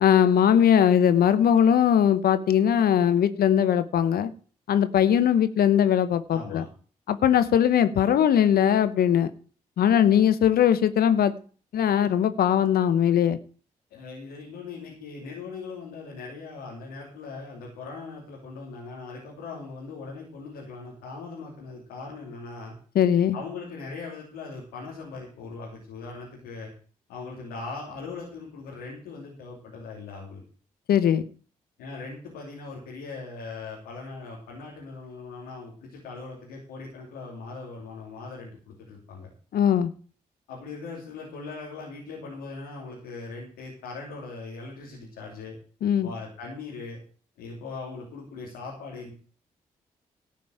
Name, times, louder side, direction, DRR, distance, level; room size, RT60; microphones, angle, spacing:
voice 1, 0.0-4.3 4.7-6.6 7.1-9.3 9.8-11.3 11.7-13.4 22.9-23.4 30.9-31.3 39.5-39.9 45.8-46.1, left 9 dB, 75° left, 13 dB, 1.0 m, -20 dB
voice 2, 6.3-6.7 13.9-22.7 23.3-26.7 27.1-30.4 31.8-39.3 40.5-45.6 46.0-47.0 47.4-49.1, left 4 dB, 90° left, -3 dB, 3.0 m, -40 dB
13.0 x 5.4 x 8.9 m, 0.41 s
hypercardioid pair, 45°, 16 cm